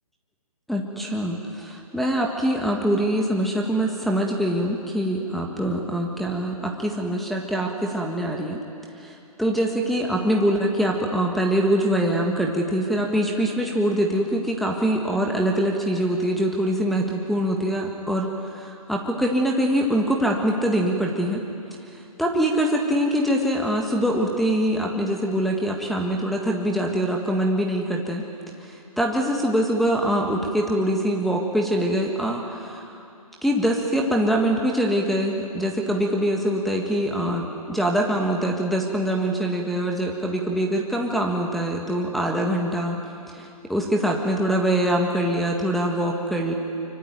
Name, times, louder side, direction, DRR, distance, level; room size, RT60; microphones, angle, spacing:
voice 1, 0.7-8.6 9.0-21.4 21.9-28.2 28.6-33.0 33.4-43.0 43.3-46.5, right 1 dB, ahead, -2 dB, 1.6 m, -24 dB
25.0 x 24.5 x 9.5 m, 2.6 s
hypercardioid pair, 140°, 19 cm